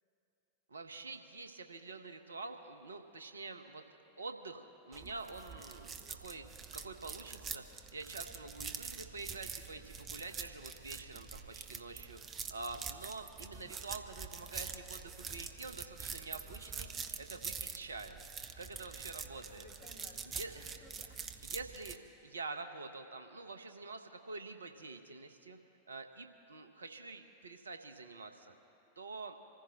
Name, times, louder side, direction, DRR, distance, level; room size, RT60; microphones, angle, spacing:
voice 1, 0.7-3.8 4.2-16.9 17.2-18.2 18.6-19.6 20.2-20.6 21.4-25.6 25.9-28.5 29.0-29.4, right 3 dB, 75° right, 7 dB, 0.9 m, -47 dB
sound 1, 4.9-22.0, right 6 dB, 25° right, 0.8 m, -45 dB
voice 2, 19.2-21.6, left 1 dB, 55° left, 1 dB, 2.7 m, -59 dB
26.5 x 15.0 x 2.9 m, 2.9 s
figure-of-eight pair, 90°, 0 cm